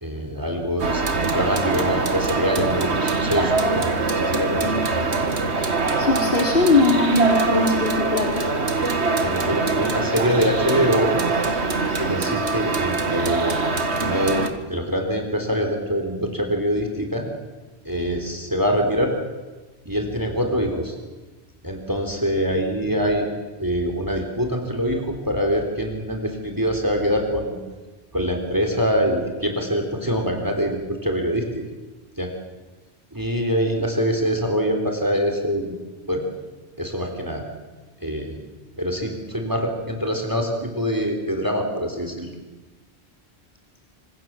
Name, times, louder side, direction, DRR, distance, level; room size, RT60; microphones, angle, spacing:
voice 1, 0.0-4.8 9.2-11.1 12.0-13.6 14.0-17.3 17.8-19.1 19.9-21.0 21.6-23.3 23.6-27.5 28.1-31.6 32.2-32.3 33.1-35.7 36.1-36.2 36.8-37.4 38.0-38.4 38.8-42.3, equal, 20° right, 4 dB, 3.8 m, -24 dB
sound 1, 0.8-14.5, right 3 dB, 85° right, 2.2 m, -23 dB
voice 2, 6.0-8.4, left 3 dB, 60° left, 1 dB, 3.7 m, -20 dB
27.0 x 26.0 x 7.6 m, 1.2 s
omnidirectional pair, 1.1 m